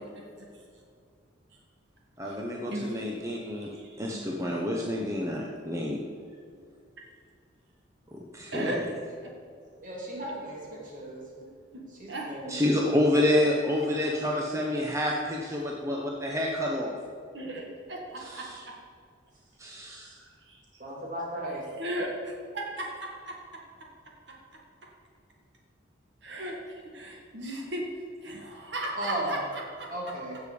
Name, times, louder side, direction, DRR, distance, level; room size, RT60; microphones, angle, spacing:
voice 1, 0.1-0.5 1.5-1.6 2.2-2.4 2.7-3.1 3.4-4.2 8.5-9.0 10.2-10.3 11.7-11.8 12.1-12.3 17.3-18.7 20.1-20.6 21.8-23.4 24.8-24.9 26.2-27.8 28.2-29.9, right 1 dB, 60° right, -1 dB, 1.7 m, -37 dB
voice 2, 2.2-3.7 4.0-6.0 8.1-8.9 12.5-16.9 18.2-18.6 19.6-20.2, left 1 dB, 15° right, -1 dB, 1.0 m, -28 dB
voice 3, 9.8-11.2 12.0-12.6 20.8-21.6 29.0-29.4 29.9-30.4, right 1 dB, 40° right, -3 dB, 3.0 m, -35 dB
16.5 x 7.0 x 5.0 m, 2.3 s
head